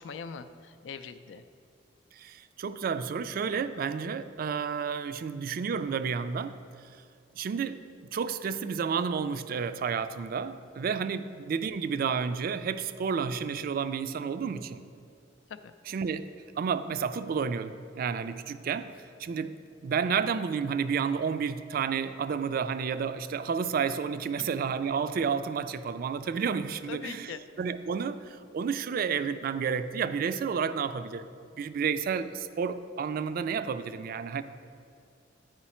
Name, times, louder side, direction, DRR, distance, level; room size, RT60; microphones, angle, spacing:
voice 1, 0.0-1.4 11.0-11.1 15.5-15.7 26.9-27.4, left 6 dB, 80° left, 11 dB, 0.4 m, -41 dB
voice 2, 2.1-6.6 7.4-7.8 8.1-14.8 15.9-16.3 16.6-18.9 19.2-19.5 19.8-31.3 31.6-34.4, right 6 dB, 50° right, 12 dB, 0.3 m, -31 dB
9.2 x 4.9 x 4.3 m, 2.3 s
head